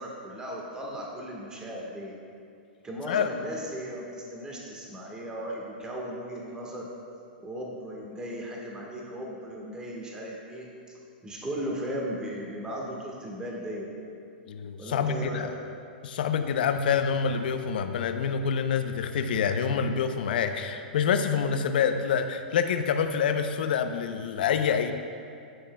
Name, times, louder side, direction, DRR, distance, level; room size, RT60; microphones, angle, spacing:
voice 1, 0.0-2.2 2.8-6.9 7.4-13.9 14.8-15.5, equal, 15° right, -2 dB, 1.5 m, -37 dB
voice 2, 14.5-15.5 16.0-24.9, left 7 dB, 70° left, 8 dB, 0.6 m, -27 dB
17.0 x 6.5 x 2.3 m, 2.4 s
hypercardioid pair, 115°, 5 cm